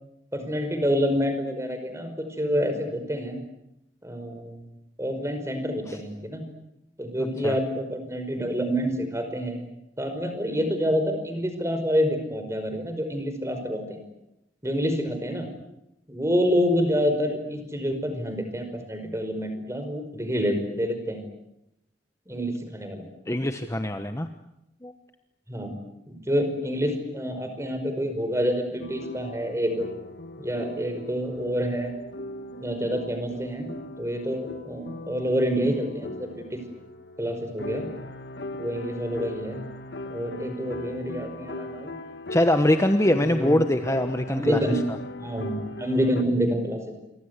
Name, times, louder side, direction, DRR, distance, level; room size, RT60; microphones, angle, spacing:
voice 1, 0.3-3.4 4.0-4.6 5.0-6.4 7.0-9.6 10.0-14.0 14.6-15.5 16.1-21.2 22.3-23.1 25.5-25.7 26.1-29.9 30.4-31.9 32.6-33.7 34.0-36.4 37.2-37.9 38.6-39.6 40.1-41.9 43.1-43.6 44.3-44.8 45.2-46.8, equal, 15° right, 7 dB, 5.2 m, -27 dB
voice 2, 23.3-24.3 24.8-24.9 42.3-44.6, left 1 dB, 15° left, 7 dB, 1.2 m, -23 dB
sound 1, 28.8-46.2, left 2 dB, 65° left, 1.7 m, -39 dB
28.0 x 24.5 x 8.3 m, 0.87 s
head